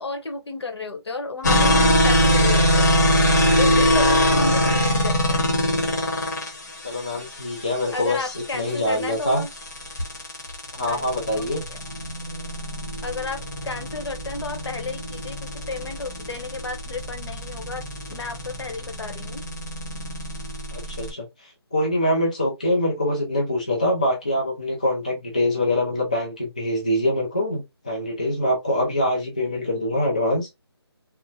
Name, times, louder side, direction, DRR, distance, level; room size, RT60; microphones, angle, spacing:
voice 1, 0.0-2.9 3.6-5.5 7.9-9.5 10.8-11.8 13.0-17.8 18.1-19.4, left 3 dB, 75° left, 1.0 m, -32 dB
sound 1, 1.4-21.1, equal, 45° left, 0.9 m, -23 dB
voice 2, 6.8-9.4 10.7-11.6 20.7-30.5, left 1 dB, 15° left, 0.3 m, -24 dB
2.9 x 2.1 x 2.7 m
hypercardioid pair, 175°, 14 cm